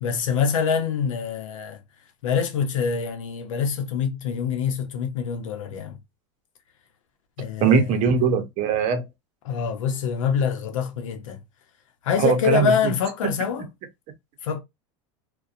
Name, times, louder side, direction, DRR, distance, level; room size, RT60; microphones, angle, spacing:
voice 1, 0.0-1.8 2.2-6.0 7.4-7.9 9.4-11.4 12.0-13.7 14.4-14.6, left 6 dB, 90° left, 0.7 m, -25 dB
voice 2, 7.6-9.0 12.2-12.7, right 6 dB, 45° right, 0.7 m, -20 dB
2.6 x 2.2 x 2.4 m
supercardioid pair, 120°, 16 cm